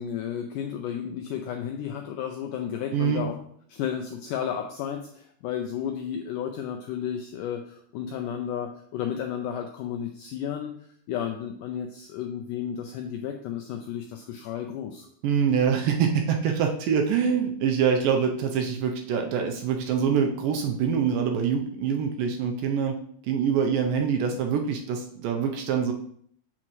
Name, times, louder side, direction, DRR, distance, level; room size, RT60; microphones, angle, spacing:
voice 1, 0.0-3.4 3.7-10.7 11.1-15.1, left 9 dB, 85° left, 4 dB, 1.8 m, -33 dB
voice 2, 2.9-3.2 15.2-23.0 23.2-25.9, right 7 dB, 80° right, 3 dB, 2.2 m, -25 dB
7.3 x 6.0 x 3.1 m, 0.63 s
omnidirectional pair, 4.3 m